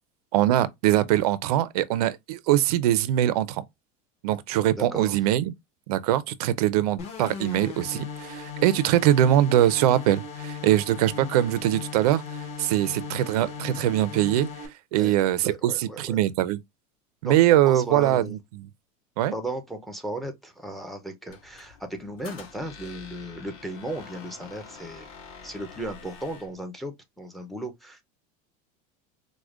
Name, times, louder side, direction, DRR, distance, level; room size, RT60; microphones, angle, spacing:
voice 1, 0.3-3.6 4.2-5.5 5.9-14.5 14.9-16.6 17.2-18.4 19.2-19.3, right 13 dB, 85° right, 0.5 m, -22 dB
voice 2, 4.8-5.2 14.9-15.1 15.4-16.2 17.2-17.3 17.7-18.4 19.3-25.1 25.4-28.0, right 1 dB, ahead, 0.5 m, -35 dB
sound 1, 7.0-14.7, left 5 dB, 35° left, 0.9 m, -37 dB
Squeak, 21.3-26.6, left 5 dB, 50° left, 1.5 m, -46 dB
4.8 x 2.1 x 2.3 m
supercardioid pair, 160°, 19 cm